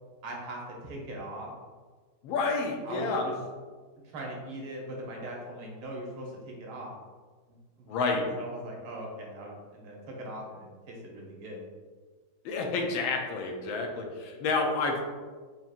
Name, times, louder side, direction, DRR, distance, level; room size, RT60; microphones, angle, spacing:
voice 1, 0.2-1.5 2.8-3.3 4.0-6.9 7.5-8.0 8.3-11.6, right 1 dB, 90° right, -1 dB, 1.8 m, -40 dB
voice 2, 2.2-3.2 7.9-8.3 12.4-15.0, left 3 dB, 75° left, 2 dB, 1.4 m, -29 dB
5.7 x 2.7 x 2.4 m, 1.4 s
omnidirectional pair, 2.3 m